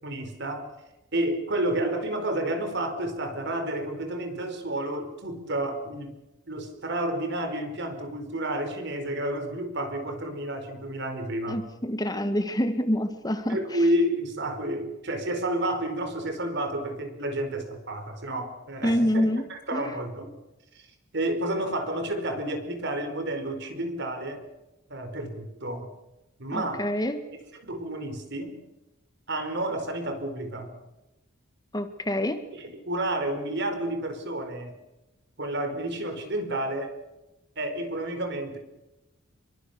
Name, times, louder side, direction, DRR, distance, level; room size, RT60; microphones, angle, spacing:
voice 1, 0.0-0.7 1.1-6.2 6.5-11.7 13.5-20.3 20.7-20.9 21.1-24.4 24.9-25.9 26.4-26.8 27.6-28.6 29.3-30.8 32.5-34.8 35.4-37.0 37.6-38.6, right 1 dB, 55° right, 7 dB, 4.8 m, -30 dB
voice 2, 11.4-13.6 18.8-19.5 19.7-20.0 26.5-27.2 31.7-32.4, equal, 20° left, 8 dB, 1.8 m, -26 dB
28.0 x 23.0 x 6.9 m, 0.98 s
head